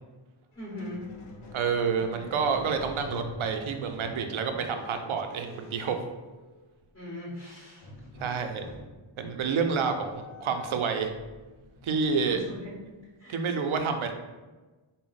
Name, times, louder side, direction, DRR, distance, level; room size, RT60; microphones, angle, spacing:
Squeak, 0.5-6.9 7.8-13.0, left 2 dB, 90° left, 0.8 m, -47 dB
voice 1, 0.5-1.1 6.9-7.9 12.3-12.8 13.2-13.3, left 1 dB, 25° left, -5 dB, 0.8 m, -40 dB
voice 2, 1.5-6.0 8.2-8.6 9.2-11.1 11.8-12.4 13.3-14.1, right 5 dB, 80° right, 6 dB, 0.5 m, -28 dB
3.9 x 2.1 x 3.9 m, 1.2 s
wide cardioid pair, 105°, 47 cm